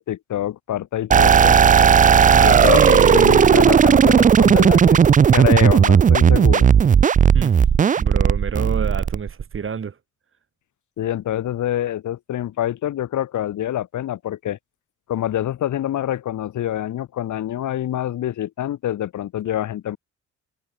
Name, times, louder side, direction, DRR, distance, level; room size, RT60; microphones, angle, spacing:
voice 1, 0.0-1.6 2.4-6.7 11.0-14.6 15.1-20.0, left 12 dB, 75° left, 6.4 m, -26 dB
sound 1, 1.1-9.6, right 7 dB, 25° right, 0.4 m, -14 dB
voice 2, 2.3-3.2 7.3-7.6 8.0-9.9, right 6 dB, 45° right, 5.1 m, -28 dB
cardioid pair, 90°, 30 cm